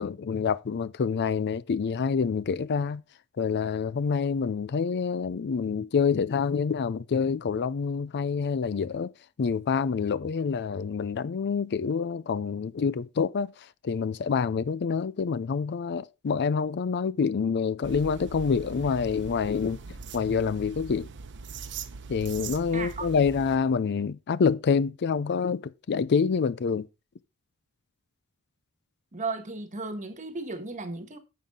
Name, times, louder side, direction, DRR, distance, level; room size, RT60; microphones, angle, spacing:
voice 1, 0.0-3.0 3.4-9.1 9.4-19.8 20.1-21.1 22.1-26.9, left 5 dB, 50° left, 0.4 m, -27 dB
sound 1, 17.8-23.6, right 5 dB, 55° right, 0.9 m, -41 dB
voice 2, 22.7-23.1 29.1-31.2, right 3 dB, 35° right, 1.4 m, -35 dB
9.5 x 7.4 x 3.7 m
head